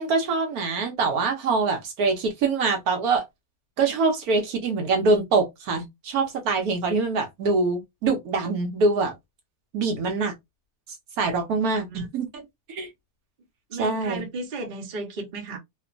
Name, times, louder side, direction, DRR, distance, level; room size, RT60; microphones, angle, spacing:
voice 1, 0.0-3.3 3.8-9.1 9.7-10.3 11.2-12.4 12.7-12.9 13.8-14.3, right 3 dB, 70° right, 1.1 m, -24 dB
voice 2, 13.7-15.6, right 3 dB, 45° right, 0.7 m, -34 dB
2.9 x 2.1 x 2.4 m
omnidirectional pair, 1.7 m